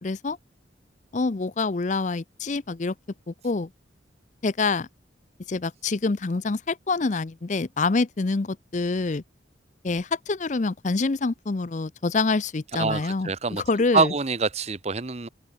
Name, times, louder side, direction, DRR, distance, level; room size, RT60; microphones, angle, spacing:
voice 1, 0.0-0.4 1.1-2.9 3.3-3.7 4.4-4.9 5.5-9.2 9.8-14.1, left 3 dB, 40° left, 0.5 m, -26 dB
voice 2, 12.7-13.6 13.9-15.3, right 4 dB, 35° right, 0.7 m, -25 dB
head